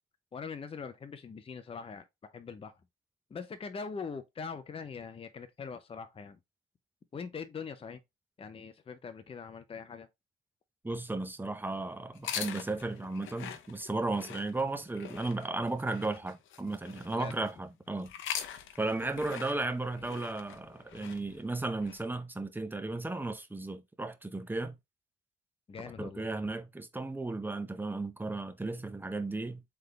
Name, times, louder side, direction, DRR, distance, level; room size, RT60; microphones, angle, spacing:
voice 1, 0.3-2.7 3.3-6.4 7.1-8.0 8.4-10.1 17.1-17.4 25.7-26.5, left 5 dB, 30° left, 0.6 m, -42 dB
voice 2, 10.8-18.1 18.8-24.7 26.0-29.6, right 2 dB, 10° right, 0.7 m, -35 dB
sound 1, 12.1-17.5 18.0-22.0, left 9 dB, 80° left, 0.7 m, -43 dB
3.8 x 3.4 x 3.3 m
cardioid pair, 90°, 20 cm